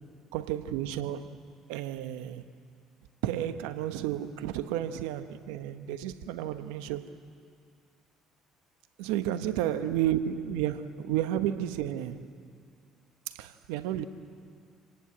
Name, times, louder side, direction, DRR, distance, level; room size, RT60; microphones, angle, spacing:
voice 1, 0.3-1.3 1.7-2.4 3.2-7.1 9.0-12.3 13.3-14.0, right 11 dB, 80° right, 1.1 m, -32 dB
27.5 x 18.5 x 8.6 m
hypercardioid pair, 60°, 0 cm